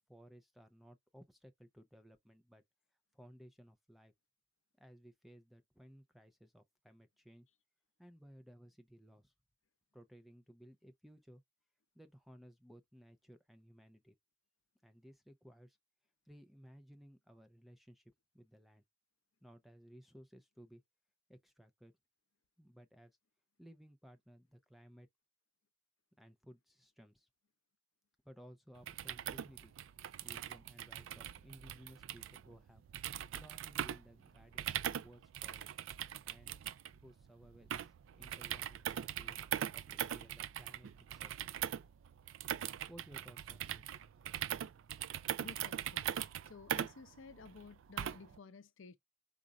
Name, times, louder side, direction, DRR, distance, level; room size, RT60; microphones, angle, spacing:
voice 1, 0.0-2.6 3.1-4.1 4.8-7.5 8.0-9.3 9.9-11.4 11.9-14.1 14.8-15.8 16.3-18.8 19.4-20.8 21.3-21.9 22.6-23.1 23.6-25.1 26.2-27.3 28.2-29.7 30.2-32.8 33.3-35.8 36.2-36.6 37.0-39.4 39.7-41.3 42.9-43.9, equal, ahead, 0.5 m, -59 dB
sound 1, 28.8-48.4, right 10 dB, 70° right, 0.3 m, -41 dB
voice 2, 45.4-49.0, left 4 dB, 70° left, 0.6 m, -54 dB
5.0 x 2.4 x 4.0 m
head